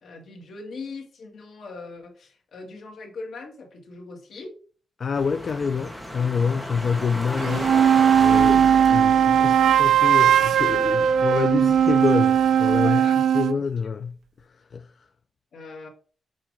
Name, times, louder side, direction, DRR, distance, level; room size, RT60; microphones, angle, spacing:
voice 1, 0.0-4.5 12.8-13.2 15.5-15.9, left 3 dB, 80° left, 2.0 m, -40 dB
voice 2, 5.0-7.7 8.2-13.0 13.3-14.1 14.7-14.9, left 6 dB, 50° left, 0.4 m, -27 dB
sound 1, 5.2-12.8, equal, 5° left, 1.1 m, -35 dB
sound 2, 7.4-13.6, right 8 dB, 90° right, 0.3 m, -18 dB
7.3 x 2.9 x 5.0 m
wide cardioid pair, 145°, 0 cm